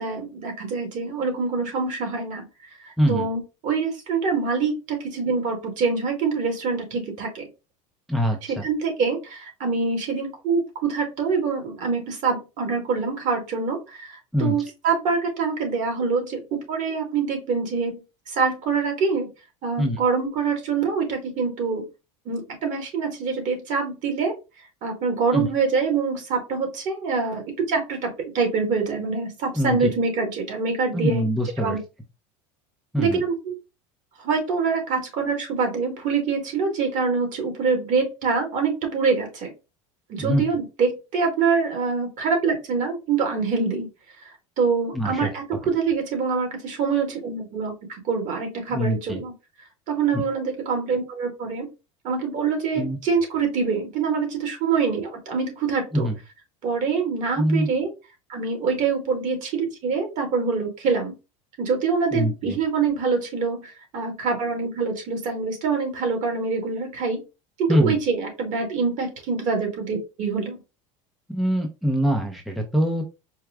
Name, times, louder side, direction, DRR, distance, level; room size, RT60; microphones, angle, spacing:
voice 1, 0.0-2.5 2.8-7.5 8.5-19.3 19.6-21.9 22.3-24.3 24.8-31.3 31.6-31.8 33.0-33.6 34.2-39.5 40.1-43.9 44.6-49.3 49.9-51.7 52.0-56.1 56.6-57.9 58.3-61.1 61.6-67.2 67.6-70.6, right 5 dB, 50° right, 3 dB, 1.9 m, -25 dB
voice 2, 3.0-3.3 8.1-8.6 14.3-14.6 19.8-20.0 25.3-25.5 29.6-29.9 30.9-31.8 32.9-33.2 40.2-40.4 44.9-45.3 48.7-49.2 52.8-53.0 55.9-56.2 57.4-57.7 62.1-62.6 67.7-68.0 71.3-73.1, equal, ahead, 1 dB, 0.7 m, -23 dB
4.7 x 2.2 x 3.5 m, 0.28 s
supercardioid pair, 110°, 16 cm